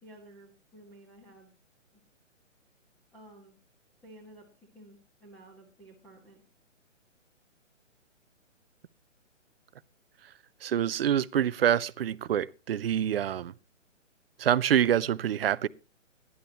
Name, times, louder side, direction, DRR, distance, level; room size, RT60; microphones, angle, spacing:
voice 1, 0.0-1.5 3.1-3.5 4.0-4.5 4.7-6.4, right 1 dB, 5° left, 1.6 m, -53 dB
voice 2, 10.6-13.5 14.4-15.7, right 10 dB, 50° right, 0.6 m, -26 dB
18.0 x 11.0 x 3.0 m
hypercardioid pair, 150°, 38 cm